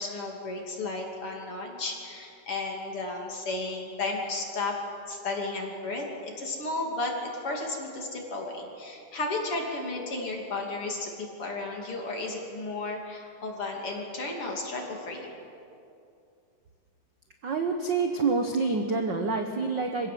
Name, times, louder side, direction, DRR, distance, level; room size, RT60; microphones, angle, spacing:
voice 1, 0.0-4.8 5.1-11.1 11.4-15.3, left 2 dB, 40° left, 0 dB, 3.5 m, -33 dB
voice 2, 17.4-20.1, right 4 dB, 80° right, 5 dB, 1.0 m, -27 dB
26.0 x 16.5 x 7.7 m, 2.6 s
omnidirectional pair, 3.9 m